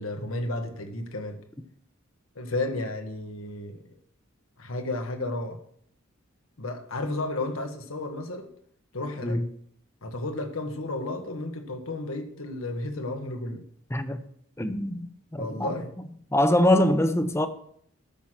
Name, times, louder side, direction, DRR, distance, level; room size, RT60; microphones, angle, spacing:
voice 1, 0.0-1.4 2.3-3.8 4.6-5.6 6.6-8.5 8.9-9.4 10.0-13.6 15.4-15.9, left 2 dB, 80° left, 1.7 m, -32 dB
voice 2, 13.9-14.2 14.6-15.7 16.3-17.5, left 1 dB, 15° left, 0.8 m, -23 dB
13.0 x 6.4 x 5.9 m
head